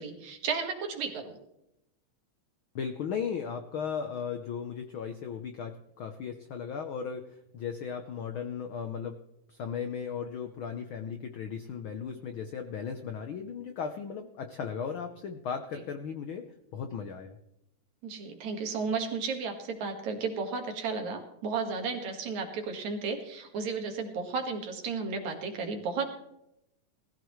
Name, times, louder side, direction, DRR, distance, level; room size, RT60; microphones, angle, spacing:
voice 1, 0.0-1.3 18.0-26.1, right 4 dB, 70° right, 4 dB, 3.0 m, -33 dB
voice 2, 2.7-7.2 7.5-9.2 9.5-16.5 16.7-17.3, left 7 dB, 80° left, 6 dB, 1.1 m, -36 dB
19.5 x 14.5 x 3.2 m, 0.82 s
omnidirectional pair, 3.4 m